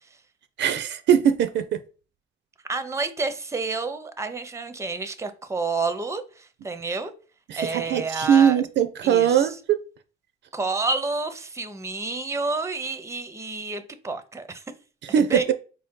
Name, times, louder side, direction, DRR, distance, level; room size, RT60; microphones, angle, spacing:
voice 1, 0.6-1.8 7.5-9.8 15.1-15.4, right 8 dB, 65° right, 0.4 m, -21 dB
voice 2, 2.7-7.1 7.5-8.6 9.0-9.6 10.5-14.6 15.3-15.5, right 3 dB, 15° right, 0.5 m, -29 dB
4.2 x 2.7 x 3.5 m
cardioid pair, 90°, 20 cm